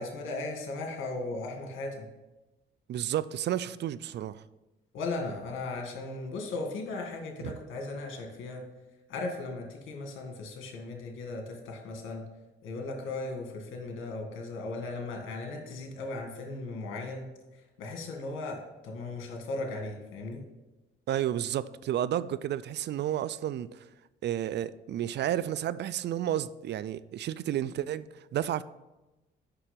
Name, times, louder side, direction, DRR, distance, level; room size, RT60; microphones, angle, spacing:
voice 1, 0.0-2.1 4.9-8.6 9.1-12.3 12.6-17.3 17.8-20.4, left 3 dB, 85° left, 1.8 m, -37 dB
voice 2, 2.9-4.4 7.4-7.6 21.1-23.9 24.2-28.6, right 11 dB, 60° right, 0.4 m, -31 dB
6.8 x 5.9 x 5.7 m
cardioid pair, 90°, 20 cm